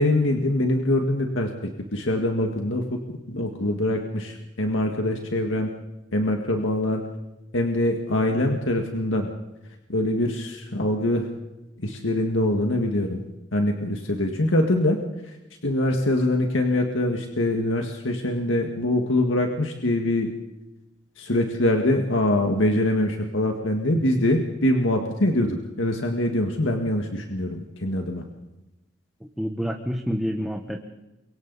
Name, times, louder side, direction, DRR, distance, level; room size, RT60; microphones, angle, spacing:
voice 1, 0.0-1.5 1.9-3.0 3.3-5.7 6.1-7.0 7.5-9.3 9.9-11.3 11.8-13.2 13.5-15.0 15.6-20.3 21.2-28.2, left 1 dB, 80° left, 3 dB, 1.8 m, -23 dB
voice 2, 29.2-30.8, equal, ahead, 3 dB, 1.2 m, -28 dB
29.0 x 24.0 x 4.1 m, 0.97 s
head